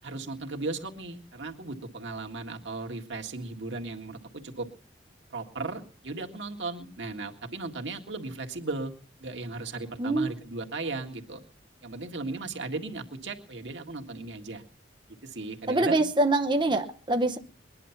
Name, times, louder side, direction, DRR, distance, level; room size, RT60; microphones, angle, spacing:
voice 1, 0.0-4.7 5.3-8.9 9.2-11.4 11.8-14.6 15.2-16.0, right 3 dB, 85° right, 3 dB, 1.9 m, -36 dB
voice 2, 10.0-10.3 15.7-17.4, right 2 dB, 25° right, 5 dB, 0.8 m, -24 dB
21.5 x 11.0 x 5.8 m, 0.43 s
head